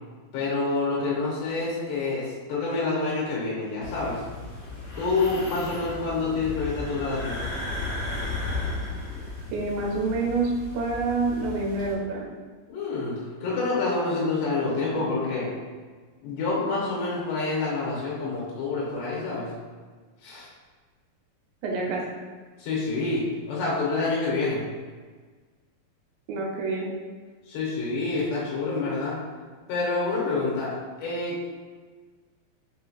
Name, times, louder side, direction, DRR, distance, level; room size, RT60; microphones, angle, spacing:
voice 1, 0.3-4.2 5.0-7.4 12.7-15.5 16.2-19.5 20.2-20.5 22.6-24.6 27.5-29.2 29.7-30.7 31.0-31.5, left 3 dB, 75° left, -5 dB, 2.4 m, -27 dB
sound 1, 3.8-11.9, left 2 dB, 55° left, 1.6 m, -35 dB
voice 2, 9.5-12.3 21.6-22.0 26.3-26.9, right 3 dB, 80° right, -2 dB, 2.5 m, -27 dB
5.7 x 2.7 x 2.3 m, 1.5 s
omnidirectional pair, 4.3 m